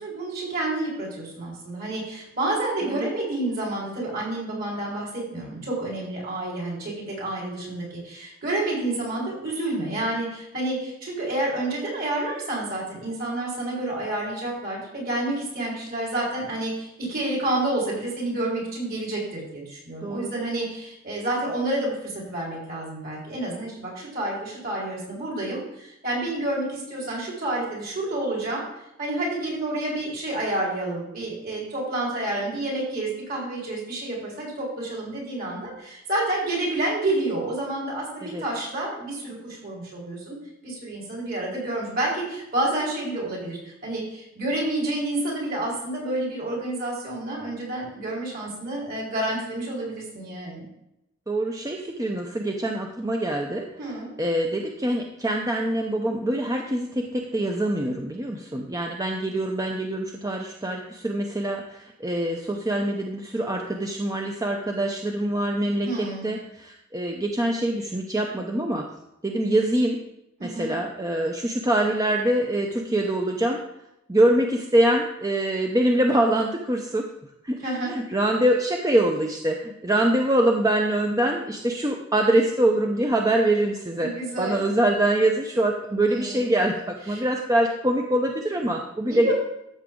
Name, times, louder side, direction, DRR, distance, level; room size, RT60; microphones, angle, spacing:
voice 1, 0.0-28.6 29.0-40.4 40.6-50.6 53.8-54.1 65.8-66.3 70.4-70.7 77.6-77.9 84.0-84.6 86.1-86.5 87.1-87.2 89.1-89.3, right 1 dB, 50° right, -4 dB, 4.5 m, -29 dB
voice 2, 20.0-20.3 38.2-38.4 51.3-53.7 54.2-68.9 69.2-70.0 70.4-73.6 74.1-77.1 77.4-77.6 77.9-84.1 84.4-89.3, right 1 dB, 20° right, 2 dB, 0.7 m, -24 dB
13.5 x 7.0 x 3.8 m, 0.85 s
head